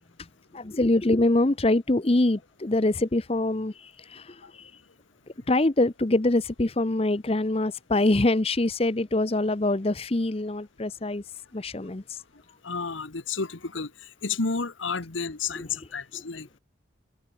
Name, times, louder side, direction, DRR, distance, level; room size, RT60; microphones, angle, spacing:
voice 1, 0.5-4.7 5.5-11.2 11.5-12.2, left 2 dB, 30° left, 0.7 m, -24 dB
voice 2, 12.6-13.9 14.2-16.6, left 4 dB, 90° left, 1.4 m, -31 dB
head